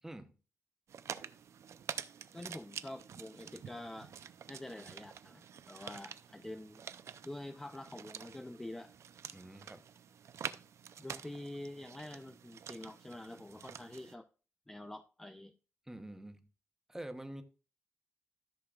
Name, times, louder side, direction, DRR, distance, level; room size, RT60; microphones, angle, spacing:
voice 1, 0.0-0.4 9.3-9.8 15.9-16.5 16.9-17.4, right 1 dB, 10° right, 0.9 m, -46 dB
sound 1, 0.9-14.2, right 8 dB, 75° right, 0.5 m, -48 dB
voice 2, 2.3-4.1 4.5-6.8 7.2-8.9 11.0-14.3 14.7-15.5, left 1 dB, 10° left, 0.4 m, -46 dB
13.5 x 6.5 x 2.4 m
wide cardioid pair, 145°, 5 cm